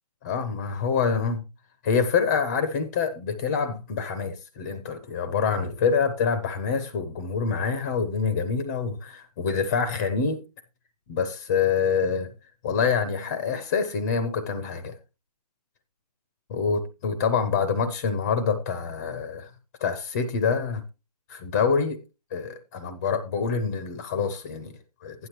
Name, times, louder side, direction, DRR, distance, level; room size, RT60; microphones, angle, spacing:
voice 1, 0.2-1.4 1.8-10.4 11.1-12.3 12.6-14.9 16.5-19.5 19.8-20.8 21.3-22.0 22.3-25.3, left 5 dB, 15° left, 0.5 m, -26 dB
12.0 x 9.9 x 2.9 m
figure-of-eight pair, 155°, 21 cm